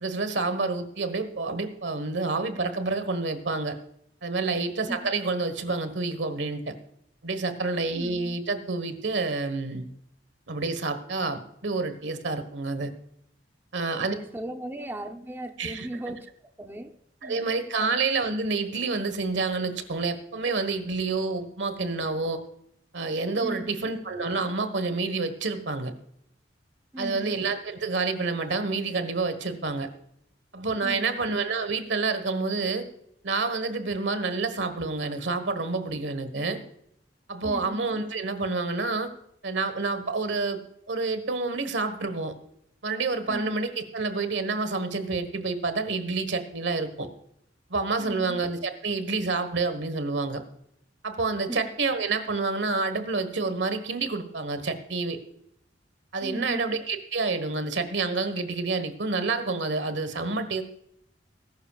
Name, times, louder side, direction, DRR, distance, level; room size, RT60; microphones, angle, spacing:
voice 1, 0.0-3.8 4.2-6.7 7.2-9.8 10.5-12.9 13.7-14.1 15.6-15.9 17.2-22.4 22.9-25.9 27.0-29.9 30.5-32.9 33.2-36.6 37.3-39.1 39.4-40.6 40.9-42.3 42.8-47.1 47.7-50.4 51.0-55.2 56.1-60.6, right 3 dB, 80° right, 1.4 m, -28 dB
voice 2, 7.9-8.4 14.0-16.3 16.6-16.9 17.2-17.5 17.8-18.0 23.4-24.0 26.9-27.4 30.8-31.2 37.4-37.9 43.3-43.6 48.0-48.4 51.5-51.7 56.2-56.7, right 1 dB, 10° right, 0.8 m, -37 dB
19.5 x 11.0 x 2.4 m
head